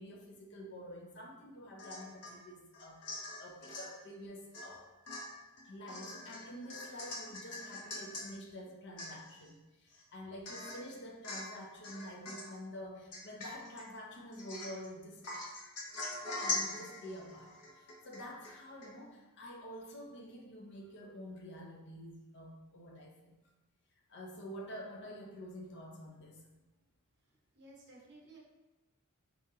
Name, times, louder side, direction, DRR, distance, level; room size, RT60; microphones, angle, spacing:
voice 1, 0.0-4.9 5.6-15.2 16.4-17.5 17.7-23.3 24.1-26.5, equal, 55° left, 1 dB, 0.7 m, -48 dB
Domestic sounds home sounds / Chink clink / Drip, 1.8-2.4 2.7-3.9 4.5-4.7 5.1-8.3 8.7-8.8 9.0-9.5 9.9-10.0 10.5-10.9 11.2-11.6 11.8-12.6 13.1-13.8 14.3-14.9 15.2-18.5 18.8-18.9, left 2 dB, 90° left, 0.9 m, -42 dB
voice 2, 27.6-28.4, right 2 dB, 50° right, -2 dB, 0.9 m, -56 dB
4.4 x 3.7 x 2.7 m, 1.1 s
head